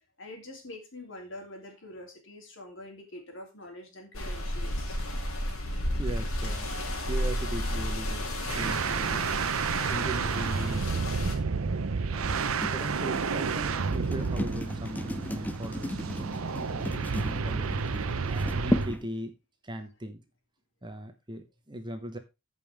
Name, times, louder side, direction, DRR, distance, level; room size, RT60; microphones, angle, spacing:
voice 1, 0.2-5.0 6.7-7.1, left 1 dB, 60° left, 2 dB, 3.0 m, -45 dB
sound 1, 4.1-11.3, equal, 90° left, 2.6 m, -32 dB
voice 2, 6.0-6.7 7.0-9.3 9.9-11.5 12.1-16.4 16.7-17.7 18.0-19.3 19.6-20.2 20.8-22.2, right 1 dB, 20° right, 7 dB, 1.0 m, -39 dB
sound 2, 8.5-19.0, right 5 dB, 75° right, 0.7 m, -30 dB
sound 3, 12.5-19.1, left 1 dB, 10° left, 0.4 m, -35 dB
14.0 x 5.4 x 3.5 m, 0.26 s
head